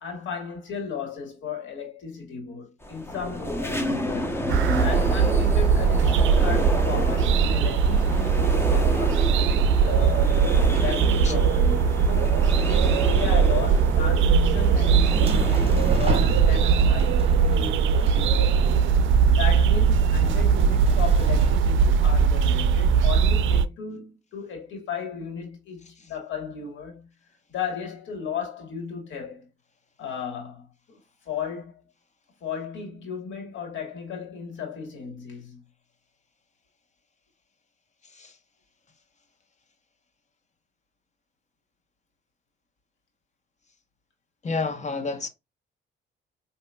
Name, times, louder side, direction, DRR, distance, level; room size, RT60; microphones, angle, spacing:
voice 1, 0.0-18.7 19.3-27.1 27.5-29.5 30.0-31.0 31.3-31.7 32.4-35.6, left 6 dB, 70° left, 1.7 m, -35 dB
sound 1, 2.8-16.1, left 1 dB, 10° left, 0.9 m, -31 dB
sound 2, 4.5-23.6, right 6 dB, 75° right, 0.4 m, -20 dB
sound 3, 15.0-21.6, right 4 dB, 30° right, 1.2 m, -33 dB
voice 2, 44.4-45.3, left 4 dB, 35° left, 1.0 m, -29 dB
5.0 x 2.8 x 2.3 m
cardioid pair, 90°, 20 cm